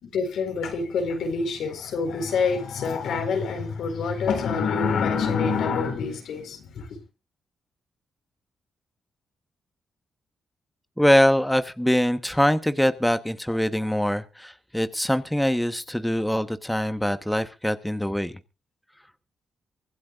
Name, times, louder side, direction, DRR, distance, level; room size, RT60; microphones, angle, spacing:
voice 1, 0.0-7.0, left 5 dB, 80° left, 4.2 m, -26 dB
voice 2, 11.0-18.3, equal, 5° left, 1.0 m, -23 dB
24.5 x 11.5 x 2.4 m
cardioid pair, 75°, 0 cm